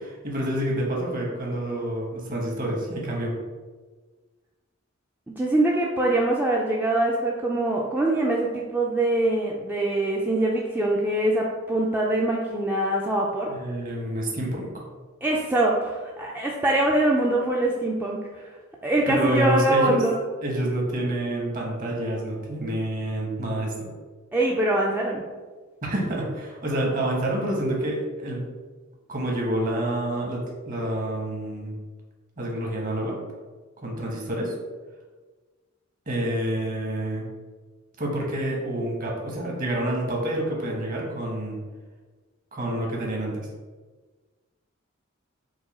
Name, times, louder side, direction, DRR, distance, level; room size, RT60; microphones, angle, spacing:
voice 1, 0.0-3.3 13.5-14.8 19.1-20.0 20.4-23.9 25.8-28.4 29.1-31.7 32.4-33.2 33.8-34.5 36.1-37.3 38.0-41.6 42.5-43.5, right 1 dB, 45° right, -2 dB, 1.0 m, -28 dB
voice 2, 5.3-13.5 15.2-18.5 18.8-20.1 24.3-25.2, right 1 dB, 10° right, -3 dB, 0.3 m, -23 dB
4.7 x 2.2 x 4.1 m, 1.4 s
head